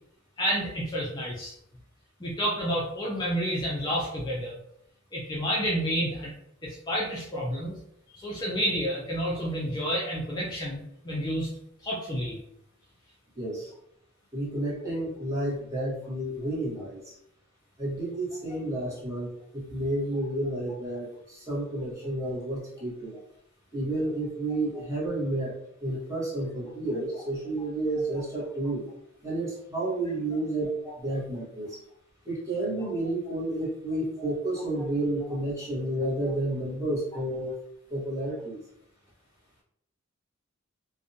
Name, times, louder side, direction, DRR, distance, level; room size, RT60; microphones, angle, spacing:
voice 1, 0.4-1.5 2.2-4.6 5.1-6.3 6.6-7.7 8.1-11.5 11.8-12.4 30.5-30.7 34.2-34.3, equal, 20° left, -5 dB, 0.4 m, -30 dB
voice 2, 13.4-13.7 14.3-17.1 17.8-23.2 23.7-25.5 25.8-28.8 29.2-31.8 32.2-37.6 37.9-38.6, right 1 dB, 15° right, -7 dB, 0.9 m, -31 dB
2.5 x 2.1 x 2.6 m, 0.74 s
head